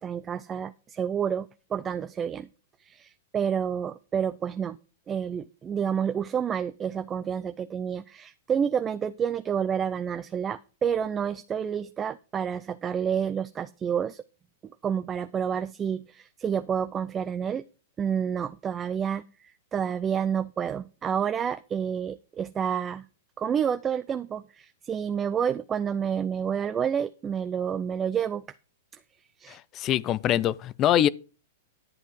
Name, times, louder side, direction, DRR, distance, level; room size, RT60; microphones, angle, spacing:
voice 1, 0.0-2.5 2.8-4.8 5.1-14.2 14.8-17.7 18.0-19.2 19.7-23.0 23.4-28.4 29.4-29.6, right 8 dB, 20° right, 0.5 m, -29 dB
voice 2, 29.5-31.1, left 12 dB, 30° left, 0.5 m, -24 dB
11.0 x 8.0 x 4.7 m
hypercardioid pair, 130°, 0 cm